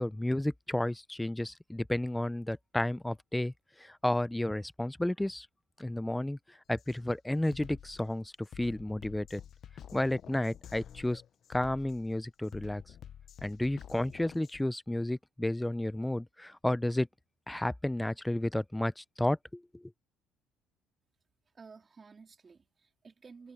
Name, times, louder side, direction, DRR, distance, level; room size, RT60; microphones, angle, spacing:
voice 1, 0.0-3.5 3.8-5.5 5.8-6.4 6.7-9.4 9.9-11.2 11.5-12.8 13.4-17.1 17.5-19.8, left 1 dB, 5° left, 0.5 m, -32 dB
Drum kit, 6.8-7.0 7.4-14.6, left 9 dB, 45° left, 0.7 m, -50 dB
voice 2, 21.5-23.5, right 5 dB, 25° right, 3.8 m, -53 dB
cardioid pair, 130°, 0 cm